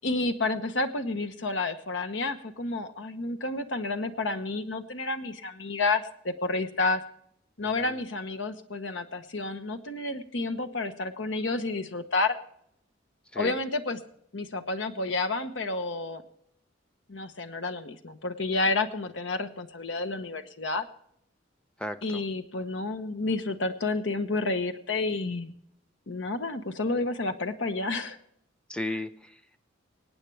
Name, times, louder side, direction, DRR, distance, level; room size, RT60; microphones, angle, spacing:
voice 1, 0.0-7.0 7.6-12.4 13.3-14.0 14.3-16.2 17.1-20.9 22.0-25.5 26.1-28.2, left 3 dB, 75° left, 8 dB, 1.1 m, -30 dB
voice 2, 21.8-22.2 28.7-29.6, left 1 dB, 5° left, 10 dB, 0.7 m, -35 dB
25.0 x 9.0 x 3.4 m, 0.70 s
head